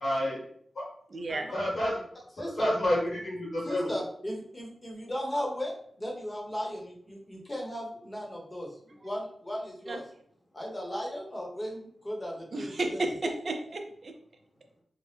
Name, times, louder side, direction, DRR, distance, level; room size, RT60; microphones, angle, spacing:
voice 1, 0.0-0.4 0.8-0.9 1.5-2.0 2.6-3.9, left 1 dB, 75° left, -4 dB, 1.4 m, -29 dB
voice 2, 1.1-1.5 9.9-10.0 12.5-14.1, right 2 dB, 55° right, 4 dB, 0.5 m, -33 dB
voice 3, 2.4-2.7 3.6-10.0 10.5-13.0, equal, 20° left, -2 dB, 0.9 m, -36 dB
2.8 x 2.1 x 3.3 m, 0.63 s
wide cardioid pair, 80°, 0 cm